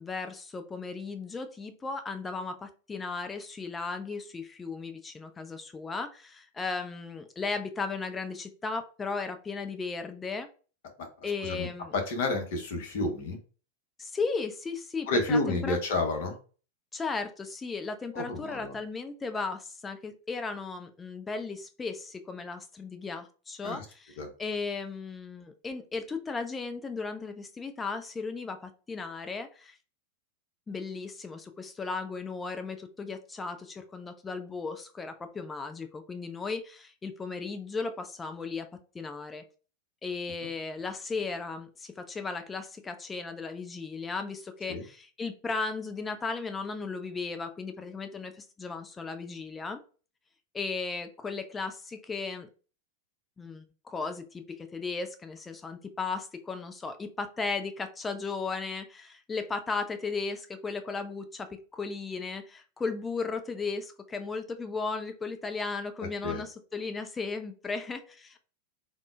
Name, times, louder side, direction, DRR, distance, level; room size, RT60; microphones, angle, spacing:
voice 1, 0.0-10.5 11.2-11.9 14.0-15.8 16.9-29.8 30.7-38.7 38.9-39.4 40.0-49.8 50.5-52.5 53.4-68.4, left 4 dB, 15° left, 7 dB, 0.3 m, -36 dB
voice 2, 11.4-13.4 15.1-16.4 18.1-18.7 23.6-23.8 24.2-24.3 44.7-44.8 66.2-66.4, left 2 dB, 50° left, 5 dB, 0.7 m, -30 dB
3.5 x 2.0 x 2.4 m, 0.37 s
figure-of-eight pair, 90°, 0 cm